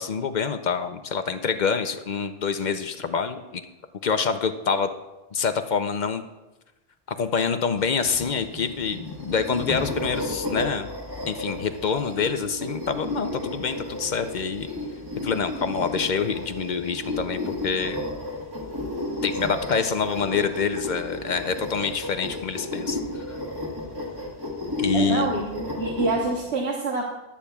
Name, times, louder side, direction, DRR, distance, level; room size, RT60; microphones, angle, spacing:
voice 1, 0.0-3.6 4.0-4.9 5.3-6.3 7.1-10.9 11.3-14.7 15.2-18.0 19.2-23.2 24.8-25.3, left 5 dB, 50° left, 9 dB, 0.7 m, -26 dB
sound 1, 7.8-26.4, left 1 dB, 20° right, 1.6 m, -33 dB
voice 2, 24.9-27.1, right 2 dB, 80° right, -2 dB, 1.4 m, -27 dB
21.5 x 8.5 x 2.3 m, 1.0 s
omnidirectional pair, 1.1 m